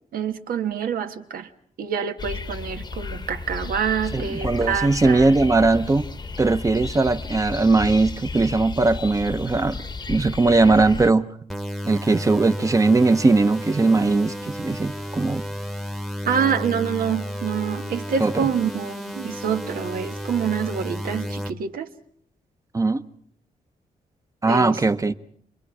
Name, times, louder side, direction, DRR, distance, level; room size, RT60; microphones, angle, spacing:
voice 1, 0.1-1.5 1.8-5.3 16.2-21.9 24.4-25.1, right 7 dB, 85° right, 1.4 m, -26 dB
sound 1, 2.2-11.1, left 4 dB, 30° left, 0.9 m, -33 dB
voice 2, 4.1-6.1 6.4-9.8 10.1-11.3 11.8-15.4 18.2-18.5 22.7-23.0 24.4-25.1, right 3 dB, 20° right, 0.8 m, -19 dB
sound 2, 11.5-21.5, equal, ahead, 1.1 m, -32 dB
29.0 x 22.5 x 4.9 m
wide cardioid pair, 125°, 15 cm